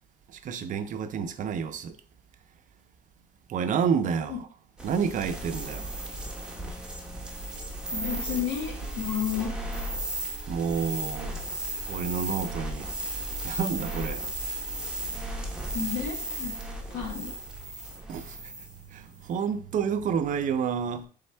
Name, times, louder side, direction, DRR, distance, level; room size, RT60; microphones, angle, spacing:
voice 1, 0.3-2.0 3.5-4.4 4.8-5.9 10.5-11.4 11.9-12.9 13.4-14.3 18.1-18.5 18.9-21.1, right 7 dB, 50° right, 0.5 m, -29 dB
sound 1, 4.8-18.8, right 1 dB, 5° right, 0.9 m, -35 dB
voice 2, 7.9-9.5 15.7-16.6 16.9-17.3, left 8 dB, 80° left, 1.3 m, -31 dB
4.3 x 3.5 x 3.3 m
cardioid pair, 110°, 17 cm